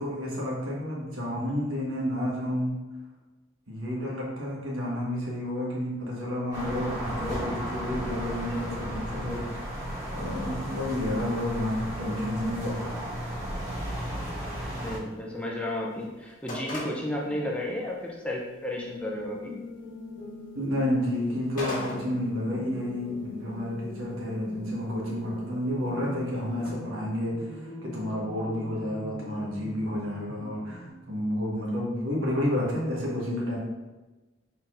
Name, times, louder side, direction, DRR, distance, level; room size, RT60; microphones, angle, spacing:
voice 1, 0.0-2.7 3.7-9.7 10.1-13.0 17.3-17.4 20.5-33.6, left 1 dB, 85° right, -4 dB, 1.3 m, -30 dB
sound 1, 6.5-15.0, equal, 35° right, 1.4 m, -34 dB
sound 2, 12.9-26.7, left 1 dB, 45° left, 1.2 m, -45 dB
voice 2, 14.8-19.6 26.5-26.6, left 1 dB, 5° left, -2 dB, 0.5 m, -33 dB
sound 3, 18.7-30.9, left 1 dB, 65° left, 1.0 m, -43 dB
4.2 x 4.0 x 2.5 m, 1.1 s
head